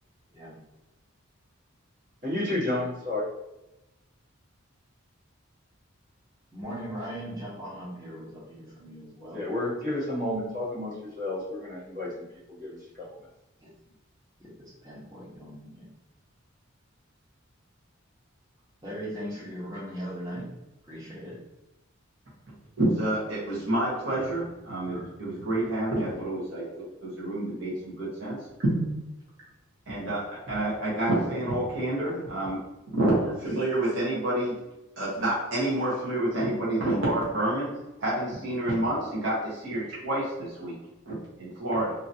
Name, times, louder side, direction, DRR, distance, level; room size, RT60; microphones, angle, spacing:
voice 1, 0.3-0.6 6.5-9.4 13.6-13.7 14.4-15.9 18.8-20.5 20.8-21.4, equal, 15° right, -10 dB, 1.0 m, -39 dB
voice 2, 2.2-3.3 9.3-12.1 12.5-13.1, left 1 dB, 40° right, -8 dB, 1.5 m, -31 dB
voice 3, 22.8-28.8 29.9-32.6 33.0-34.6 35.0-37.7 38.0-40.8 41.1-41.9, right 1 dB, 65° right, -7 dB, 1.1 m, -28 dB
2.9 x 2.7 x 2.6 m, 0.94 s
head